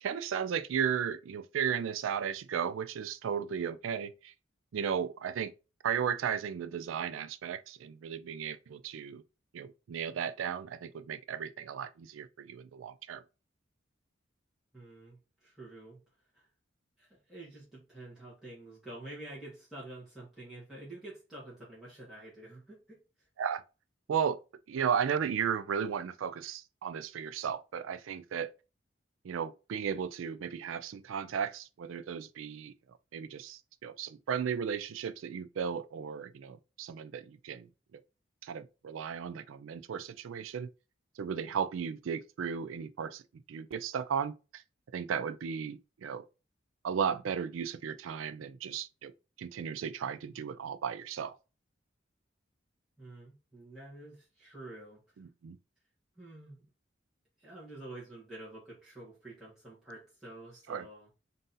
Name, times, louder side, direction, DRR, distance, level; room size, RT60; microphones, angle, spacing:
voice 1, 0.0-4.3 4.7-5.5 5.8-9.2 9.5-13.2 23.4-23.6 24.1-24.4 24.7-28.5 29.2-32.7 33.1-37.7 38.4-40.7 41.2-43.2 43.5-44.6 44.9-46.2 46.8-49.1 49.4-51.3 55.2-55.6 60.7-60.9, right 7 dB, 90° right, 0.4 m, -35 dB
voice 2, 14.7-16.0 16.3-16.5 17.0-23.0 53.0-55.0 56.2-56.6 57.4-61.1, right 2 dB, ahead, 1.3 m, -48 dB
3.8 x 2.7 x 3.8 m
head